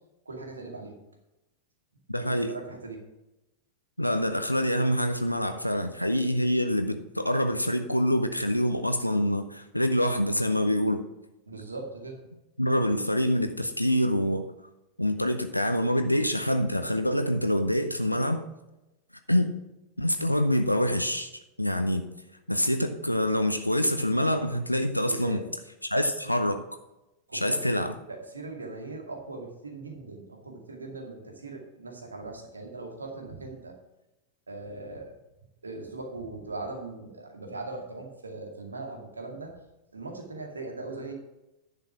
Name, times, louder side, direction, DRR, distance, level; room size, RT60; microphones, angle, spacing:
voice 1, 0.3-0.9 2.2-3.0 11.5-12.2 25.1-25.5 27.3-27.6 28.1-33.7 34.5-35.1 35.6-39.5 39.9-41.1, right 3 dB, 75° right, 2 dB, 2.2 m, -39 dB
voice 2, 2.1-2.5 4.0-11.0 12.6-14.5 15.0-18.4 19.3-19.6 20.0-21.3 21.6-22.1 22.5-25.4 25.8-26.6 27.3-27.9, equal, 90° left, 7 dB, 0.7 m, -26 dB
10.5 x 6.8 x 6.0 m, 0.96 s
figure-of-eight pair, 90°, 0 cm